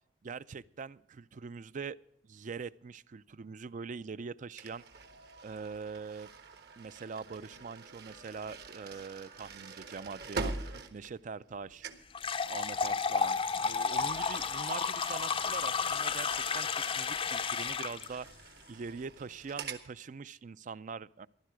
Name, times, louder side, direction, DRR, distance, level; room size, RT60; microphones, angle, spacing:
voice 1, 0.2-2.0 2.2-4.8 5.4-6.3 6.8-11.9 12.5-16.7 17.0-21.3, right 5 dB, 45° right, 17 dB, 0.4 m, -43 dB
sound 1, 4.6-11.6 11.8-12.1 13.9-19.9, right 3 dB, 60° right, 1.3 m, -45 dB
sound 2, 12.1-18.1, left 5 dB, 30° left, 0.5 m, -32 dB
15.0 x 12.0 x 4.9 m, 0.69 s
head